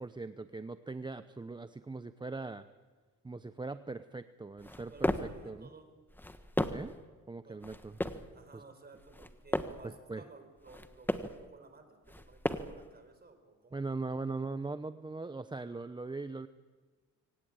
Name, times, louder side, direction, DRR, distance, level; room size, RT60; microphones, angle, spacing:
voice 1, 0.0-2.7 3.2-5.7 6.7-7.0 7.3-8.0 8.5-8.6 9.8-10.2 13.7-16.5, right 3 dB, 15° right, 11 dB, 0.7 m, -40 dB
sound 1, 4.6-5.4 6.1-7.0 7.6-8.3 9.0-9.9 10.6-11.4 12.1-12.9, left 1 dB, 5° left, 1.4 m, -35 dB
voice 2, 4.8-5.9 7.4-7.6 8.3-13.8, right 3 dB, 30° right, 8 dB, 4.6 m, -56 dB
24.0 x 18.0 x 9.0 m, 1.4 s
cardioid pair, 90°, 30 cm